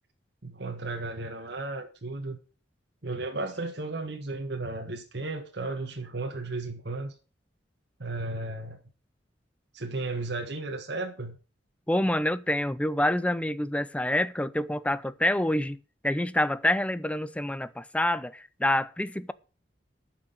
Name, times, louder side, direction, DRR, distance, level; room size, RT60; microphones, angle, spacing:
voice 1, 0.4-2.4 3.0-7.1 8.0-8.8 9.7-11.4, right 2 dB, 65° right, 1.6 m, -34 dB
voice 2, 11.9-19.3, left 1 dB, 5° left, 0.5 m, -27 dB
9.8 x 6.2 x 7.9 m
head